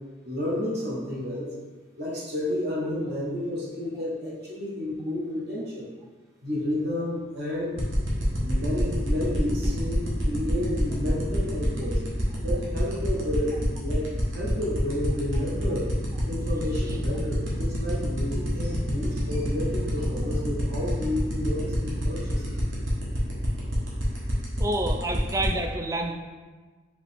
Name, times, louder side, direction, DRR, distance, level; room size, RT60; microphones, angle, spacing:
voice 1, 0.2-1.5 2.0-5.9 6.4-7.8 8.4-12.0 12.4-15.9 16.2-22.6, left 1 dB, 55° right, -6 dB, 1.2 m, -31 dB
sound 1, 7.8-25.5, right 1 dB, 75° right, 1.1 m, -30 dB
voice 2, 24.6-26.1, right 1 dB, 15° right, 4 dB, 0.3 m, -28 dB
5.0 x 3.1 x 3.5 m, 1.4 s
head